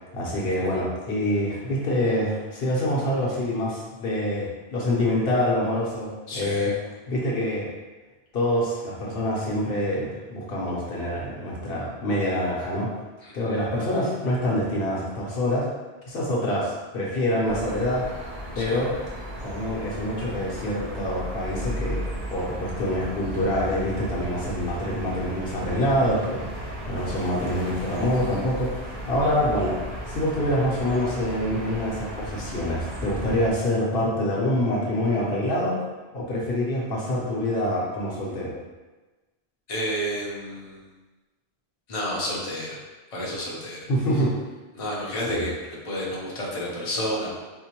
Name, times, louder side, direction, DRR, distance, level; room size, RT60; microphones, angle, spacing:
voice 1, 0.1-6.7 7.1-7.7 8.3-12.9 13.3-15.7 16.1-18.2 18.5-18.9 19.4-22.0 22.3-29.7 30.0-35.8 36.1-38.5 43.9-44.3 45.3-45.4, left 1 dB, 65° left, -5 dB, 1.0 m, -26 dB
voice 2, 6.3-6.7 13.2-13.6 18.6-18.8 39.7-40.8 41.9-42.8 43.1-43.9 44.7-45.5 45.8-47.4, equal, 35° left, -5 dB, 0.7 m, -30 dB
sound 1, 17.4-33.5, equal, 40° right, 0.8 m, -35 dB
4.4 x 2.1 x 2.9 m, 1.2 s
omnidirectional pair, 1.1 m